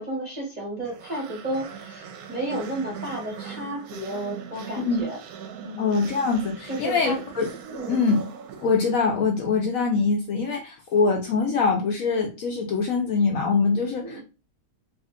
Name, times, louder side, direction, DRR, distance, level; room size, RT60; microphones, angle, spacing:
voice 1, 0.0-5.2 5.6-6.0 6.7-7.2 7.7-8.0 14.0-14.2, right 1 dB, 35° right, 0.7 m, -32 dB
sound 1, 0.8-9.3, right 7 dB, 70° right, 1.0 m, -40 dB
voice 2, 5.8-7.5 7.9-8.2 8.6-14.2, left 4 dB, 70° left, 0.8 m, -23 dB
2.7 x 2.5 x 3.6 m
omnidirectional pair, 1.8 m